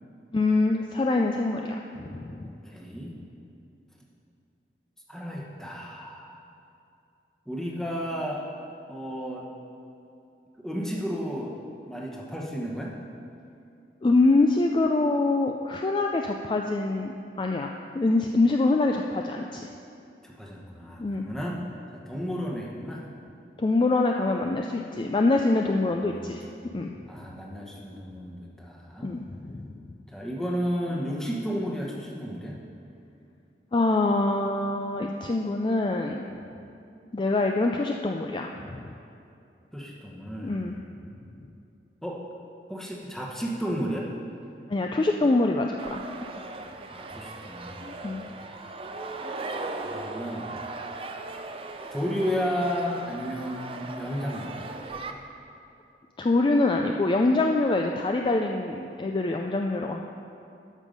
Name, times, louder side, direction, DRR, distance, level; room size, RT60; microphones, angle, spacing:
voice 1, 0.3-2.5 14.0-17.1 17.4-19.7 21.0-21.2 23.6-26.4 26.7-26.9 29.0-29.8 33.7-36.3 37.1-38.9 40.4-40.7 44.7-46.0 47.8-48.2 56.2-60.0, left 2 dB, 25° left, 2 dB, 0.3 m, -25 dB
voice 2, 2.4-3.1 5.1-6.4 7.5-8.4 8.9-9.5 10.6-11.5 11.9-12.9 20.2-21.6 21.9-23.1 26.1-26.5 27.1-29.1 30.1-32.6 39.7-40.8 42.0-42.2 42.7-44.1 46.9-47.9 49.8-50.6 51.9-54.6, equal, 5° left, -3 dB, 1.1 m, -33 dB
sound 1, 45.8-55.1, right 3 dB, 30° right, 0.5 m, -38 dB
12.5 x 5.5 x 5.2 m, 2.7 s
head